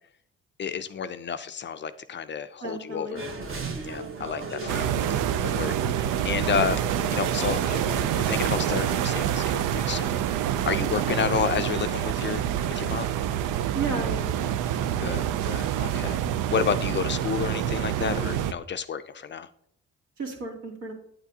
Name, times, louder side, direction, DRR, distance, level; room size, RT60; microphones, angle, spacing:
voice 1, 0.6-3.2 3.8-5.0 5.4-6.8 7.1-10.2 10.6-12.4 12.8-13.1 15.0-16.2 16.5-19.5, left 7 dB, 40° left, 12 dB, 0.4 m, -30 dB
voice 2, 2.6-3.2 13.7-14.4 20.2-20.9, right 3 dB, 65° right, 0 dB, 2.5 m, -33 dB
sound 1, 3.1-8.9, right 3 dB, 45° right, 1.2 m, -36 dB
sound 2, 4.7-18.5, right 10 dB, 90° right, 0.5 m, -27 dB
8.8 x 8.2 x 2.7 m, 0.72 s
cardioid pair, 90°, 30 cm